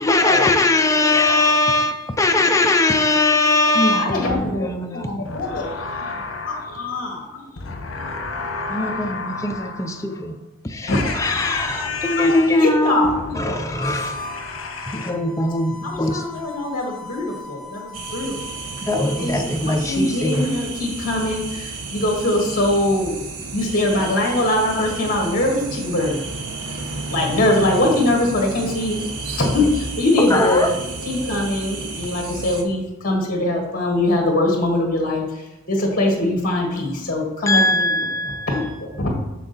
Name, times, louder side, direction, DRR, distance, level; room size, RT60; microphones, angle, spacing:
voice 1, 0.0-5.4 8.7-10.4 10.6-14.2 14.9-16.3 18.8-20.6 27.5-27.6 29.4-29.5 30.2-30.8 37.5-38.6, left 2 dB, 15° left, 0.4 m, -20 dB
voice 2, 3.9-5.7 6.7-7.4 10.9-11.1 12.6-13.7 15.8-18.6 19.2-23.2 23.5-26.2 27.1-29.0 29.4-30.7 31.1-39.1, left 1 dB, 40° left, 1.5 m, -22 dB
voice 3, 5.2-7.1 7.6-10.2 10.9-12.7 13.1-15.1, left 4 dB, 65° left, 1.0 m, -31 dB
Harmonica, 13.7-19.3, left 2 dB, 25° right, 2.8 m, -37 dB
sound 1, 17.9-32.6, right 3 dB, 90° right, 1.0 m, -32 dB
6.6 x 6.1 x 4.0 m
head